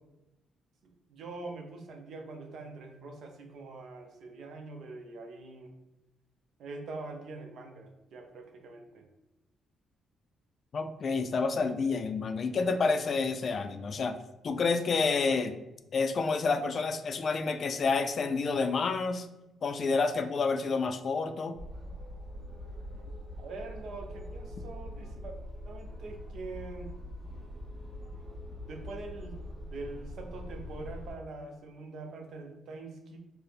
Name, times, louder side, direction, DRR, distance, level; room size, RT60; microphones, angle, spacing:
voice 1, 0.8-5.7 6.6-9.1 23.4-25.4 25.6-26.9 28.7-33.2, right 3 dB, 70° right, 4 dB, 0.6 m, -44 dB
voice 2, 10.7-14.2 14.4-15.6 15.9-19.3 19.6-21.6, left 4 dB, 50° left, 7 dB, 0.3 m, -29 dB
sound 1, 21.5-31.1, left 1 dB, 40° right, 1.1 m, -43 dB
4.5 x 2.0 x 3.4 m, 0.96 s
cardioid pair, 90°, 0 cm